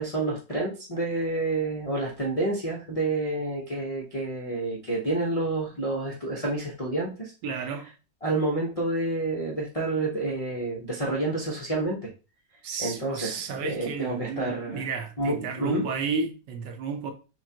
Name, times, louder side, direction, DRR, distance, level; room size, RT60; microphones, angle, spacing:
voice 1, 0.0-7.3 8.2-12.1 12.8-14.8 15.2-15.8, right 2 dB, 45° left, 0.4 m, -29 dB
voice 2, 7.4-7.9 12.6-17.1, right 4 dB, 80° right, 1.4 m, -32 dB
6.0 x 2.3 x 2.8 m
omnidirectional pair, 1.9 m